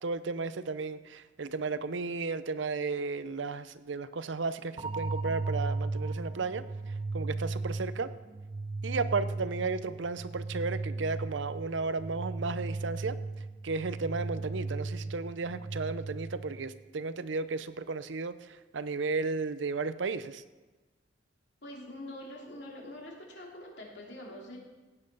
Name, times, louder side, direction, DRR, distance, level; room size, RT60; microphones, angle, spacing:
voice 1, 0.0-8.1 8.8-13.2 13.6-20.4, right 4 dB, 75° right, 13 dB, 0.7 m, -34 dB
sound 1, 4.8-16.7, right 3 dB, 25° right, 0.4 m, -36 dB
voice 2, 21.6-24.6, left 1 dB, 65° left, -1 dB, 3.0 m, -44 dB
16.5 x 8.9 x 5.5 m, 1.2 s
head